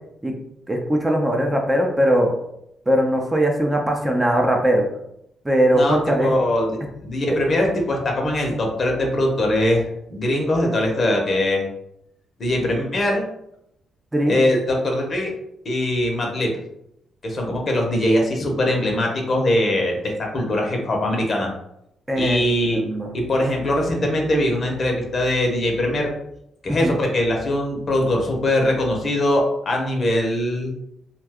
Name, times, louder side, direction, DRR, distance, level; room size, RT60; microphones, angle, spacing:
voice 1, 0.7-2.3 2.9-4.9 5.4-6.3 7.3-7.4 14.1-14.3 22.1-23.1 26.7-27.0, equal, 15° right, 1 dB, 0.6 m, -20 dB
voice 2, 5.7-11.7 12.4-13.2 14.3-15.3 15.6-16.5 17.2-21.5 22.2-22.8 23.1-26.1 26.6-30.7, left 1 dB, 50° left, 1 dB, 0.9 m, -21 dB
2.6 x 2.3 x 3.5 m, 0.79 s
supercardioid pair, 60°, 0 cm